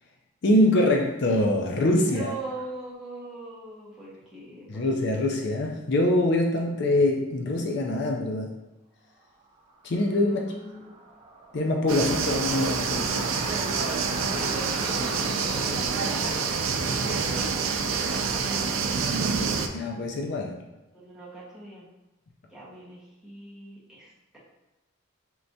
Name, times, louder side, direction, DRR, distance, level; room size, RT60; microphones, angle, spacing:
voice 1, 0.4-2.3 4.7-8.5 9.8-10.5 11.5-13.3 19.7-20.6, left 1 dB, 60° left, 1 dB, 0.5 m, -24 dB
voice 2, 2.0-5.3 10.3-10.9 14.2-19.0 20.9-21.8 22.5-24.4, right 1 dB, 5° right, -8 dB, 1.2 m, -41 dB
sound 1, 9.2-18.0, right 2 dB, 30° right, 0.5 m, -42 dB
sound 2, 11.9-19.7, right 5 dB, 90° right, 0.4 m, -27 dB
4.6 x 3.3 x 2.6 m, 1.0 s
head